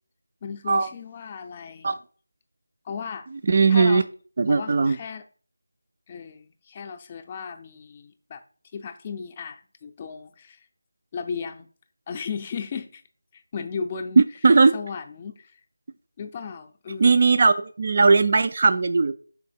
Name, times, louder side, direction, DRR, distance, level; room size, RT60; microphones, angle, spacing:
voice 1, 0.4-1.9 2.8-3.3 3.7-4.1 4.5-5.2 6.1-8.4 8.7-10.7 11.1-11.7 12.1-13.0 13.3-14.2 14.7-15.6 16.2-17.2, left 6 dB, 20° left, 8 dB, 0.5 m, -35 dB
voice 2, 3.5-4.0 4.4-5.0 14.2-14.7 17.0-19.1, right 4 dB, 40° right, 10 dB, 0.3 m, -18 dB
5.5 x 4.1 x 4.2 m, 0.41 s
figure-of-eight pair, 165°, 0 cm